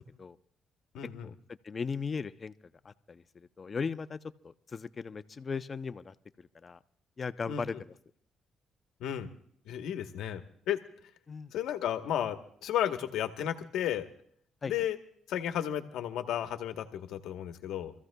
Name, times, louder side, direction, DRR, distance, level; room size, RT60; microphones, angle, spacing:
voice 1, 0.9-1.3 7.5-7.6 9.0-9.3 9.7-10.8 11.5-14.1 14.7-15.0 15.3-17.9, left 10 dB, 85° left, 7 dB, 1.1 m, -33 dB
voice 2, 1.6-2.5 2.8-4.2 4.4-6.8 7.2-7.9 11.3-11.5 14.6-14.7, left 5 dB, 35° left, 13 dB, 0.6 m, -37 dB
27.5 x 14.5 x 2.3 m, 0.65 s
cardioid pair, 90°, 0 cm